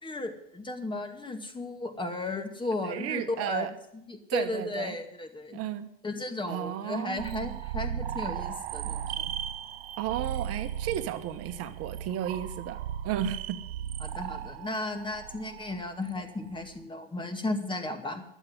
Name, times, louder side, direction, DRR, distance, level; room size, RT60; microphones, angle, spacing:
voice 1, 0.0-3.7 3.9-5.6 6.0-9.3 14.0-18.2, left 2 dB, 15° left, 6 dB, 2.4 m, -35 dB
voice 2, 2.8-3.7 4.3-5.0 5.5-5.9 6.5-7.6 10.0-13.6, right 11 dB, 50° right, 10 dB, 1.1 m, -33 dB
sound 1, 7.2-16.8, right 10 dB, 80° right, 0.9 m, -37 dB
12.0 x 8.3 x 9.7 m, 0.78 s
hypercardioid pair, 85°, 30 cm